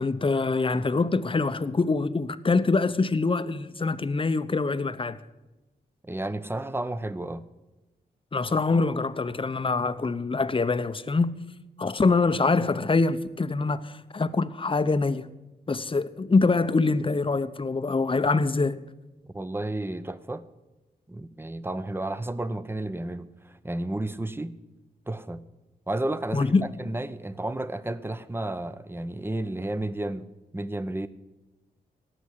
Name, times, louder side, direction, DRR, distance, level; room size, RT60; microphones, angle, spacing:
voice 1, 0.0-5.2 8.3-11.4 11.8-15.3 15.7-18.8 26.3-26.7, left 3 dB, 30° left, 0.8 m, -24 dB
voice 2, 6.0-7.4 19.3-20.5 21.1-24.5 25.1-25.4 25.9-30.3 30.5-31.1, right 1 dB, 15° right, 0.9 m, -32 dB
17.5 x 6.2 x 9.8 m
cardioid pair, 55°, 17 cm